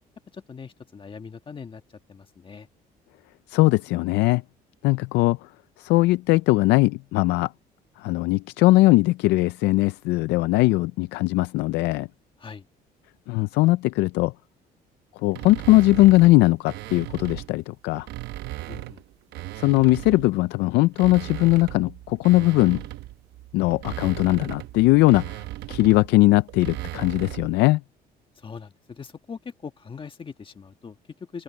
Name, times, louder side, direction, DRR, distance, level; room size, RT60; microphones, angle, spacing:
voice 1, 0.3-2.7 12.4-12.7 18.7-19.0 28.3-31.4, left 5 dB, 30° left, 1.7 m, -41 dB
voice 2, 3.5-4.4 4.8-5.5 5.8-7.5 8.0-12.1 13.3-14.3 15.2-18.1 19.6-22.8 23.5-27.8, left 19 dB, 90° left, 0.4 m, -20 dB
sound 1, 15.3-17.5 18.0-20.4 20.8-27.6, right 16 dB, 85° right, 0.8 m, -37 dB
open air
cardioid pair, 110°, 17 cm